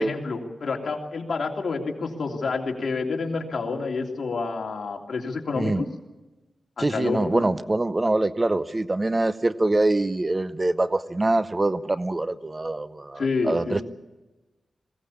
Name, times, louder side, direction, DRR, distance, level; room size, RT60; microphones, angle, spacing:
voice 1, 0.0-5.9 6.8-7.4 13.2-13.8, left 4 dB, 60° left, 1 dB, 3.0 m, -28 dB
voice 2, 5.6-5.9 6.8-13.8, right 2 dB, 25° right, 14 dB, 0.6 m, -24 dB
20.5 x 17.0 x 8.6 m, 1.1 s
wide cardioid pair, 80°, 0 cm